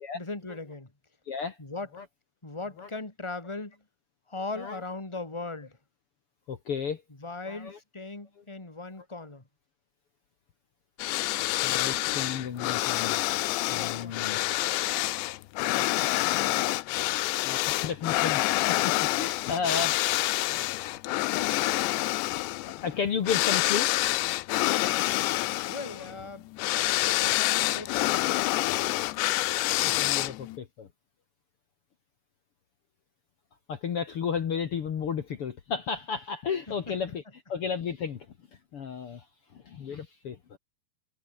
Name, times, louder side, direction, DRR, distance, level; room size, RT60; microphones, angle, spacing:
voice 1, 0.1-0.9 1.6-1.9 2.4-3.8 4.3-5.8 7.2-9.4 13.7-13.9 25.7-26.5 26.9-28.1 36.9-37.0, left 3 dB, 10° left, 1.7 m, -38 dB
voice 2, 6.5-7.0 7.5-7.8 11.6-13.2 13.7-14.4 17.4-18.9 19.2-20.2 20.5-21.0 22.6-23.9 29.8-30.9 33.7-37.2 37.5-38.3 38.7-39.2 39.6-40.6, left 6 dB, 70° left, 1.3 m, -33 dB
sound 1, 11.0-30.6, left 18 dB, 85° left, 3.1 m, -27 dB
omnidirectional pair, 5.0 m